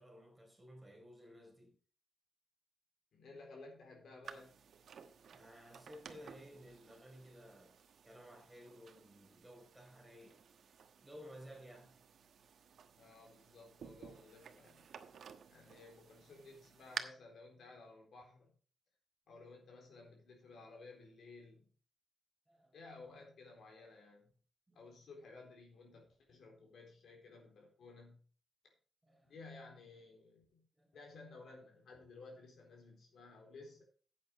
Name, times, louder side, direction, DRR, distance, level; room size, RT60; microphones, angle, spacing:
voice 1, 0.0-1.7 5.3-7.8 8.0-10.5 11.0-12.0 22.5-22.7 24.7-24.8 29.0-29.3 30.8-31.0, equal, 10° right, 4.3 m, -56 dB
voice 2, 3.1-4.5 12.9-14.9 15.5-18.5 19.3-21.7 22.7-24.3 24.7-28.2 29.2-30.7 30.9-33.8, left 3 dB, 75° left, 4.0 m, -56 dB
sound 1, 4.2-17.0, right 7 dB, 70° right, 1.2 m, -53 dB
10.5 x 8.6 x 4.6 m
wide cardioid pair, 140°, 0 cm